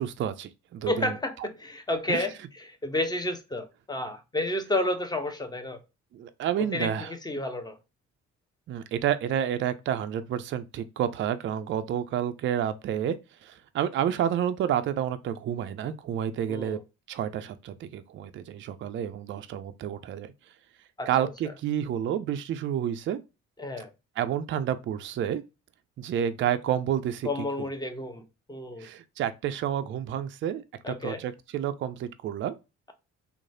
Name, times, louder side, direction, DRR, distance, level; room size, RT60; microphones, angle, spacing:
voice 1, 0.0-1.1 2.1-2.2 6.1-7.1 8.7-13.2 13.4-16.8 17.1-20.3 21.1-23.2 24.2-25.4 26.0-27.3 27.6-27.7 28.8-32.5, right 10 dB, 35° right, 0.4 m, -30 dB
voice 2, 0.9-5.8 6.6-7.8 16.5-16.8 21.0-21.3 23.6-23.9 27.2-28.2 28.5-28.9 30.8-31.2, left 1 dB, 10° left, 0.6 m, -31 dB
3.0 x 2.1 x 2.5 m
hypercardioid pair, 45°, 36 cm